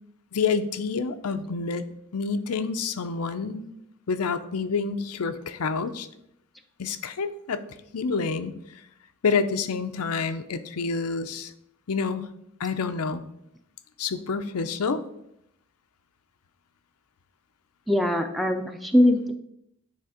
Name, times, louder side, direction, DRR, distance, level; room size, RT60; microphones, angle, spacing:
voice 1, 0.3-1.8 2.1-3.6 4.1-6.1 6.8-7.6 7.9-8.5 9.2-11.5 11.9-12.3 12.6-13.2 14.0-15.0, left 5 dB, 85° left, 10 dB, 0.6 m, -28 dB
voice 2, 17.9-19.3, left 1 dB, ahead, 4 dB, 0.5 m, -21 dB
9.3 x 3.3 x 4.9 m, 0.76 s
head